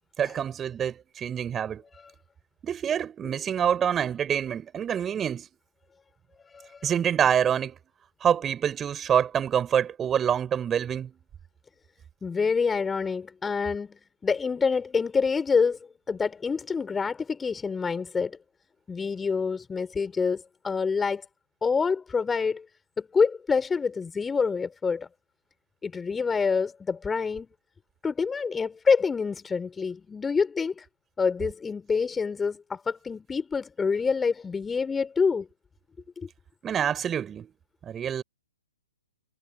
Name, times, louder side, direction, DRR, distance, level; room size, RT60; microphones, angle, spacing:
voice 1, 0.2-1.8 2.6-5.5 6.8-7.8 8.2-11.2 36.6-37.5 37.8-38.2, right 8 dB, 15° right, 6.4 m, -26 dB
voice 2, 6.5-6.9 12.2-15.8 16.1-18.4 18.9-21.3 21.6-22.7 23.0-25.1 25.8-27.5 28.0-30.9 31.2-35.5 36.2-36.3, left 5 dB, 10° left, 5.3 m, -27 dB
figure-of-eight pair, 120°, 0 cm